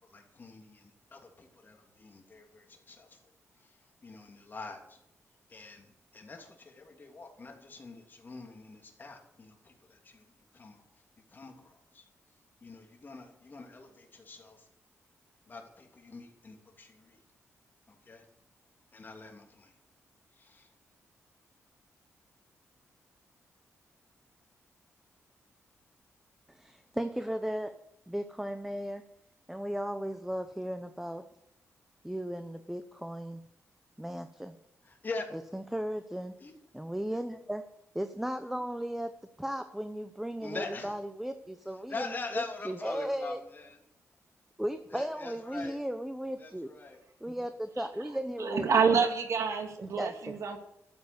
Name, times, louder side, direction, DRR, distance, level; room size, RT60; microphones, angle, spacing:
voice 1, 0.0-3.2 3.6-5.0 5.5-10.3 10.5-10.8 11.3-12.1 12.6-14.7 15.4-17.2 17.9-18.3 18.9-19.8 20.3-20.7 34.8-35.3 36.4-36.5 40.4-41.0 41.9-43.8 44.9-45.8 46.4-47.0, left 3 dB, 35° left, 2 dB, 3.0 m, -44 dB
voice 2, 26.5-27.8 28.1-29.0 29.5-31.3 32.0-33.4 34.0-34.6 35.3-36.4 36.7-37.7 37.9-42.2 42.6-43.4 44.6-46.7 47.2-48.6 49.8-50.3, equal, 5° right, 9 dB, 0.8 m, -36 dB
voice 3, 48.4-50.6, right 5 dB, 70° right, 5 dB, 2.3 m, -27 dB
12.5 x 8.1 x 8.2 m, 0.81 s
cardioid pair, 100°, 5 cm